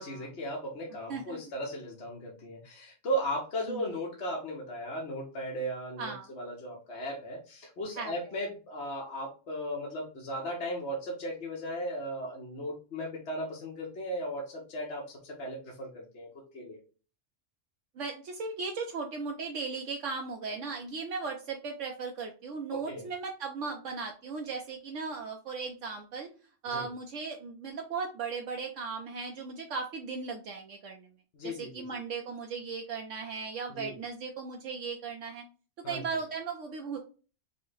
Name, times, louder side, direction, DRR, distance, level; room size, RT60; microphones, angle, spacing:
voice 1, 0.0-16.3 16.5-16.8 22.7-23.1 26.7-26.9 31.3-32.0 33.7-33.9 35.8-36.0, equal, 60° left, -2 dB, 1.4 m, -36 dB
voice 2, 6.0-6.3 8.0-8.1 18.0-26.3 26.6-31.1 31.4-35.4 35.8-37.0, right 4 dB, 75° right, 1 dB, 1.0 m, -37 dB
5.6 x 2.2 x 3.9 m, 0.36 s
omnidirectional pair, 1.3 m